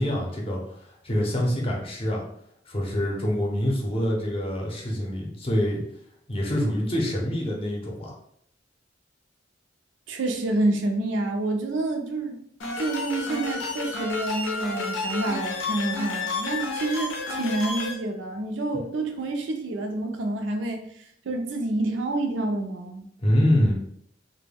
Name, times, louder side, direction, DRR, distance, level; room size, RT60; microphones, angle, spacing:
voice 1, 0.0-2.2 2.7-5.8 6.3-8.1 23.2-23.7, equal, 30° left, -1 dB, 0.6 m, -25 dB
voice 2, 10.1-12.4 12.8-20.8 21.2-23.1, right 2 dB, 75° right, 4 dB, 0.5 m, -28 dB
sound 1, 12.6-17.9, left 3 dB, 85° left, 0.6 m, -31 dB
2.2 x 2.1 x 3.3 m, 0.70 s
head